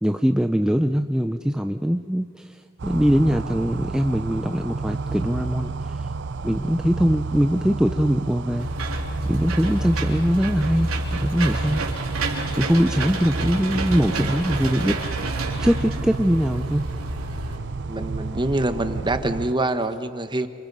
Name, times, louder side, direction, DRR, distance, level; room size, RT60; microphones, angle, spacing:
voice 1, 0.0-6.1 6.4-9.0 9.2-11.8 12.6-15.0 15.2-15.3 15.6-16.8, equal, 5° right, 6 dB, 0.6 m, -22 dB
sound 1, 2.8-19.5, right 4 dB, 55° right, 0.6 m, -31 dB
Engine / Mechanisms, 8.6-17.6, right 2 dB, 85° right, 3.6 m, -29 dB
voice 2, 17.9-20.5, right 2 dB, 20° right, 9 dB, 1.1 m, -25 dB
29.0 x 27.0 x 5.5 m, 2.2 s
head